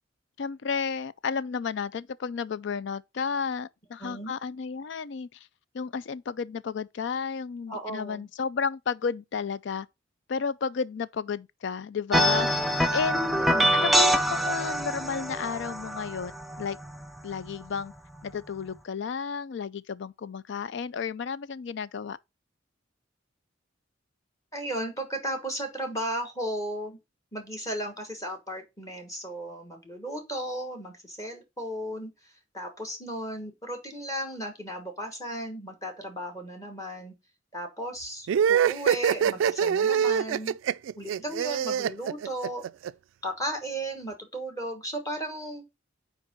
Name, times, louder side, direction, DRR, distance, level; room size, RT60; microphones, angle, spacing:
voice 1, 0.4-5.4 5.7-9.9 10.3-12.5 12.9-13.3 13.7-16.8 17.2-17.9 18.2-22.2, left 6 dB, 65° left, 0.4 m, -32 dB
voice 2, 4.0-4.3 7.7-8.3 13.3-13.9 24.5-27.0 27.3-37.1 37.5-40.6 41.0-42.6 43.2-45.6, right 1 dB, 20° left, 1.3 m, -35 dB
sound 1, 12.1-17.5, equal, ahead, 0.5 m, -25 dB
sound 2, 38.3-42.9, right 8 dB, 90° right, 0.3 m, -24 dB
5.8 x 4.6 x 5.1 m
head